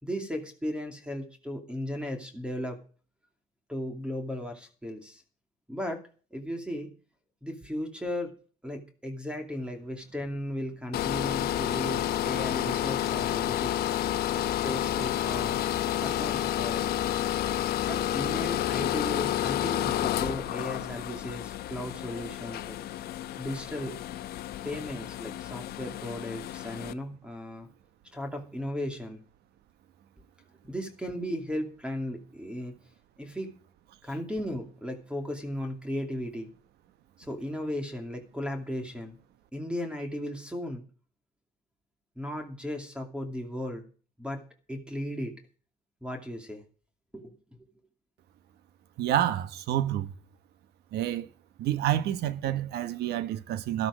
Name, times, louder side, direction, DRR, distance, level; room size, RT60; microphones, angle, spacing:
voice 1, 0.0-2.8 3.7-5.2 5.7-6.0 6.3-6.9 7.4-8.3 8.6-13.9 14.3-15.6 16.0-16.9 17.9-22.8 23.4-24.0 24.6-27.7 28.1-29.2 30.6-32.8 33.2-33.5 34.0-36.5 37.2-39.2 39.5-40.8 42.2-43.8 44.2-45.4 46.0-46.6 47.1-47.3, left 1 dB, 5° right, 2.7 m, -36 dB
sound 1, 10.9-26.9, left 12 dB, 70° left, 0.9 m, -30 dB
voice 2, 49.0-50.1 50.9-51.3 51.6-53.9, right 11 dB, 75° right, 1.1 m, -28 dB
12.5 x 12.5 x 5.0 m
cardioid pair, 110°, 17 cm